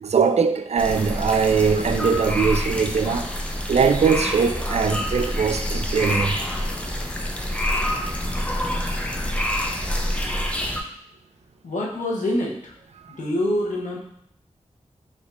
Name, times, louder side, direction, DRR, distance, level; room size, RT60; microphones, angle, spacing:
voice 1, 0.0-3.3 3.7-6.4, right 5 dB, 60° right, 0.4 m, -21 dB
sound 1, 0.8-10.8, equal, 10° left, 0.5 m, -27 dB
voice 2, 11.6-12.7 13.2-14.0, left 1 dB, 85° left, 1.0 m, -25 dB
4.9 x 3.4 x 2.6 m
wide cardioid pair, 80°, 13 cm